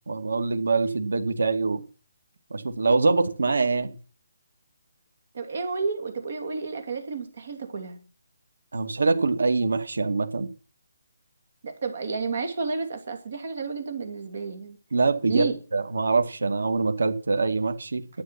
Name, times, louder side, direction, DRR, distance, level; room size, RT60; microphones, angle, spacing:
voice 1, 0.1-1.8 2.5-3.9 8.7-10.5 14.9-18.2, right 3 dB, 85° right, 2.1 m, -24 dB
voice 2, 5.3-8.0 11.6-14.8 15.3-15.6, right 4 dB, 40° right, 2.7 m, -31 dB
11.5 x 8.6 x 5.9 m
hypercardioid pair, 180°, 0 cm